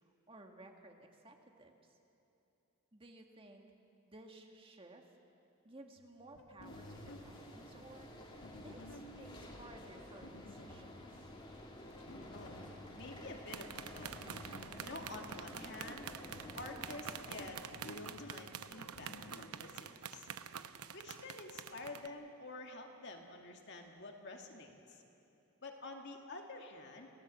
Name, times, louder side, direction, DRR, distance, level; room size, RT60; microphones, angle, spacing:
voice 1, 0.0-2.0 2.9-3.7 4.0-5.1 5.6-11.3, right 2 dB, 25° right, 3 dB, 1.9 m, -57 dB
sound 1, 6.0-19.5, left 1 dB, 75° left, 1.9 m, -55 dB
sound 2, 6.6-17.5, left 1 dB, 25° left, 2.4 m, -52 dB
voice 2, 13.0-14.3 14.8-16.1 16.6-20.3 20.9-25.0 25.6-27.1, left 2 dB, 55° left, 2 dB, 2.2 m, -49 dB
sound 3, 13.5-22.1, right 8 dB, 90° right, 0.8 m, -48 dB
27.5 x 17.5 x 7.6 m, 3.0 s
head